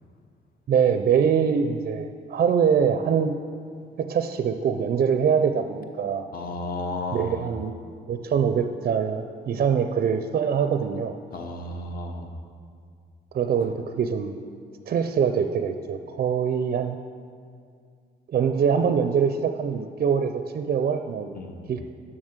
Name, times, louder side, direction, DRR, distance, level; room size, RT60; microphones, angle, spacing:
voice 1, 0.7-3.4 4.0-6.2 7.1-7.7 8.1-11.2 13.3-14.4 14.9-17.0 18.3-21.3 21.7-21.8, right 7 dB, 45° right, 7 dB, 0.4 m, -23 dB
voice 2, 6.3-7.4 11.3-12.3 21.3-21.7, left 2 dB, 50° left, 4 dB, 1.0 m, -33 dB
7.3 x 6.1 x 6.5 m, 2.2 s
cardioid pair, 90°, 20 cm